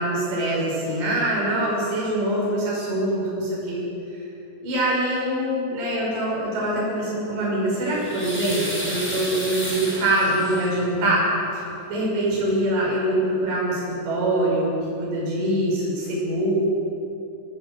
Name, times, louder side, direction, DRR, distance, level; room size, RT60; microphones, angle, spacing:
voice 1, 0.0-3.8 4.6-11.2 11.5-16.6, right 1 dB, 70° right, -6 dB, 8.4 m, -24 dB
sound 1, 7.6-10.9 12.1-12.2 12.5-12.6, equal, ahead, 5.7 m, -32 dB
25.5 x 19.5 x 7.8 m, 2.8 s
omnidirectional pair, 5.2 m